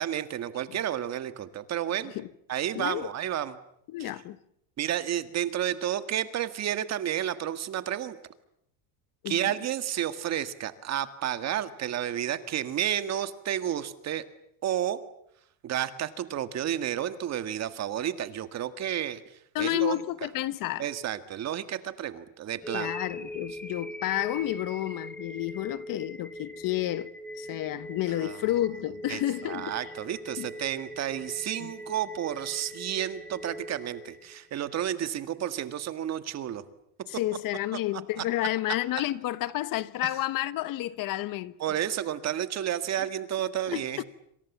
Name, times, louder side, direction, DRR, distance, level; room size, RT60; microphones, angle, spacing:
voice 1, 0.0-2.1 2.5-3.6 4.0-4.1 4.8-8.2 9.3-14.2 14.6-15.0 15.6-19.2 19.6-20.0 20.8-22.9 28.1-28.4 29.1-36.6 41.6-44.0, right 11 dB, 35° right, 1.8 m, -31 dB
voice 2, 2.7-3.1 3.9-4.4 9.2-9.4 19.5-20.9 22.7-27.1 27.4-29.7 30.4-30.5 31.6-31.7 37.1-41.5 43.7-44.0, left 14 dB, 50° left, 1.2 m, -30 dB
sound 1, 22.6-34.7, equal, 5° left, 2.1 m, -42 dB
27.0 x 26.5 x 7.3 m
cardioid pair, 150°, 43 cm